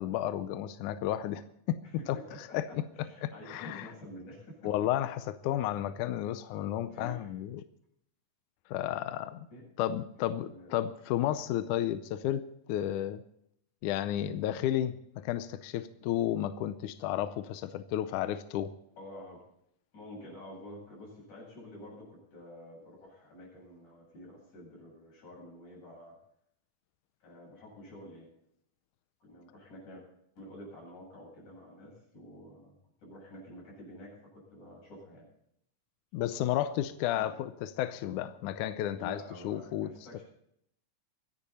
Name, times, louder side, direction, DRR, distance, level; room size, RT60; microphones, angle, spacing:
voice 1, 0.0-1.4 1.7-2.8 3.2-3.9 4.6-7.6 8.7-9.5 9.8-13.2 13.8-18.7 36.1-39.9, left 12 dB, 80° left, 12 dB, 1.9 m, -32 dB
voice 2, 1.8-4.7 6.9-7.3 9.5-9.7 10.4-10.8 11.3-11.4 19.0-19.4 19.9-26.2 27.2-28.3 29.2-30.0 30.4-32.8 33.0-35.2 37.1-37.4 39.0-40.2, left 1 dB, 55° left, -3 dB, 9.6 m, -49 dB
24.5 x 10.0 x 4.2 m, 0.73 s
omnidirectional pair, 4.1 m